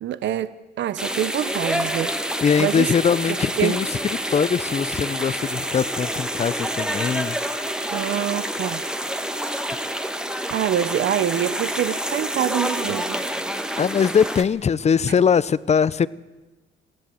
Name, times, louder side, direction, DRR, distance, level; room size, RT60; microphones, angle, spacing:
voice 1, 0.0-2.9 3.3-3.8 7.9-8.9 9.4-9.5 10.5-13.3, right 11 dB, 65° right, 15 dB, 0.7 m, -26 dB
sound 1, 1.0-14.4, equal, 5° right, 1.4 m, -28 dB
voice 2, 2.4-3.9 4.3-7.7 13.8-16.1, left 6 dB, 35° left, 19 dB, 0.6 m, -21 dB
21.5 x 16.0 x 7.7 m, 1.2 s
cardioid pair, 90°, 20 cm